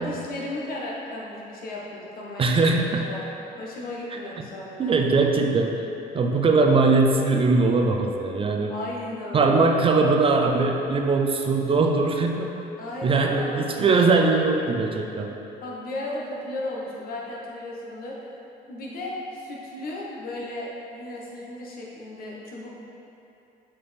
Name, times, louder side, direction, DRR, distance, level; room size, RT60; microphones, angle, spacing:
voice 1, 0.0-3.3 3.6-5.1 8.7-9.6 12.8-13.7 15.6-18.3 18.7-22.7, left 1 dB, 60° left, -3 dB, 1.2 m, -35 dB
voice 2, 2.4-3.1 4.8-5.8 6.1-8.7 9.3-12.5 13.0-15.3, right 3 dB, 35° right, 3 dB, 0.4 m, -21 dB
6.6 x 4.4 x 3.4 m, 2.8 s
cardioid pair, 110°, 17 cm